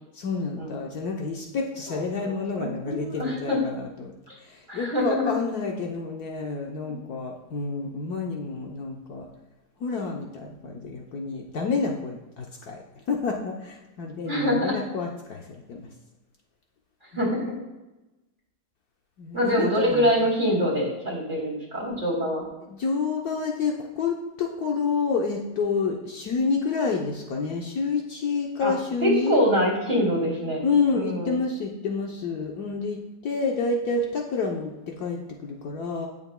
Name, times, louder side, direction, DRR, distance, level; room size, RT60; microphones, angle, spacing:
voice 1, 0.1-4.1 4.4-9.3 9.8-15.9 19.2-20.2 22.7-29.4 30.6-33.0 33.2-36.1, left 4 dB, 65° left, 0 dB, 1.3 m, -29 dB
voice 2, 1.9-2.3 2.6-3.6 4.3-4.4 4.7-5.3 14.2-14.7 17.1-17.4 19.3-22.4 28.6-28.7 29.0-30.6 30.9-31.3, equal, 25° right, -4 dB, 3.3 m, -25 dB
16.5 x 7.0 x 2.2 m, 1.0 s
omnidirectional pair, 1.9 m